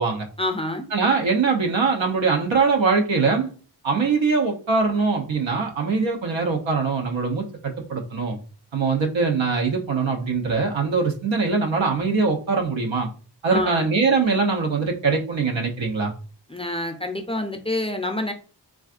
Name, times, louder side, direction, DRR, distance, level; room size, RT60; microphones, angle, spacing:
voice 1, 0.4-0.9 13.5-13.9 16.5-18.3, left 1 dB, 15° left, 4 dB, 0.4 m, -27 dB
voice 2, 0.9-3.5 3.8-8.4 8.7-13.1 13.4-16.1, right 4 dB, 90° right, 3 dB, 0.8 m, -22 dB
3.4 x 2.4 x 2.4 m, 0.37 s
wide cardioid pair, 70°, 44 cm